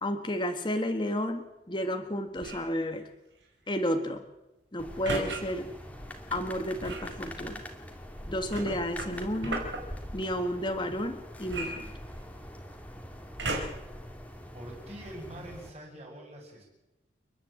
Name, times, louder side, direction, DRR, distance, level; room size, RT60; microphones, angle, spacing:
voice 1, 0.0-3.1 3.7-4.2 4.7-5.7 6.3-7.6 8.3-9.6 10.1-11.9, equal, 25° left, 6 dB, 1.6 m, -32 dB
sound 1, 2.3-2.7 5.0-5.4 6.8-7.1 8.5-9.8 11.5-12.4 13.4-13.9 14.6-14.7, right 2 dB, 75° right, 5.0 m, -35 dB
sound 2, 4.8-15.7, equal, 10° left, 2.4 m, -44 dB
voice 2, 14.5-16.7, right 1 dB, 35° right, -1 dB, 7.6 m, -44 dB
29.5 x 11.0 x 8.6 m, 0.97 s
head